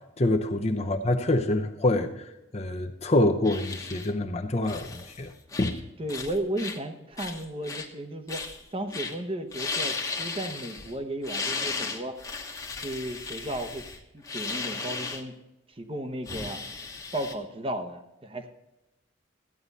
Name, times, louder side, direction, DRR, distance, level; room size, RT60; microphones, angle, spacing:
voice 1, 0.2-2.1 2.5-5.3 5.6-5.8, left 1 dB, 35° left, 4 dB, 0.7 m, -26 dB
sound 1, 3.4-4.1 4.6-5.2 5.5-5.8 6.1-6.8 7.2-7.9 8.3-8.6 8.9-9.1 9.5-10.9 11.2-15.2 16.2-17.3, left 4 dB, 20° left, 1.1 m, -35 dB
voice 2, 6.0-8.5 8.7-12.2 12.8-13.8 14.1-15.3 15.8-16.6 17.1-18.5, right 1 dB, 30° right, 7 dB, 1.0 m, -34 dB
14.5 x 9.5 x 4.2 m, 0.96 s
head